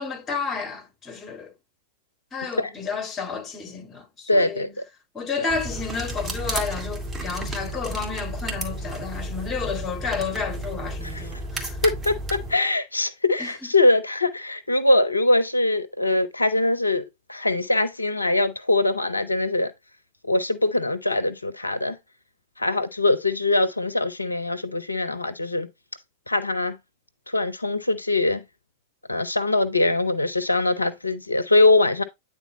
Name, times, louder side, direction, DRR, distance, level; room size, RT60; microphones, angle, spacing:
voice 1, 0.0-1.5 2.3-4.7 5.1-11.8 13.4-13.5, left 5 dB, 20° left, 2.0 m, -31 dB
voice 2, 4.3-4.7 11.0-11.3 11.8-19.7 20.3-22.0 22.6-25.7 26.3-26.8 27.3-28.4 29.1-32.0, left 2 dB, 80° left, 0.5 m, -22 dB
sound 1, 5.5-12.5, right 1 dB, 15° right, 2.2 m, -32 dB
9.2 x 3.7 x 3.8 m
figure-of-eight pair, 90°, 0 cm